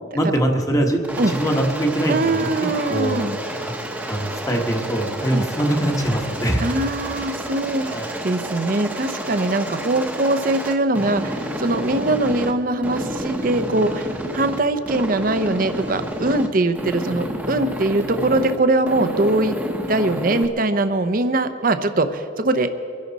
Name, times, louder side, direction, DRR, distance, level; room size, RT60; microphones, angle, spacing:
voice 1, 0.1-2.5 2.9-3.7 4.1-6.6 7.8-8.1, right 1 dB, 15° left, 2 dB, 1.2 m, -23 dB
Aircraft, 1.0-12.5 12.8-14.6 14.9-16.5 16.8-18.6 18.9-20.5, equal, 10° right, 1.0 m, -30 dB
voice 2, 2.1-3.4 5.3-5.5 6.6-7.9 8.2-19.6 19.9-22.7, right 2 dB, 45° right, 10 dB, 0.7 m, -21 dB
24.0 x 11.5 x 4.1 m, 2.7 s
head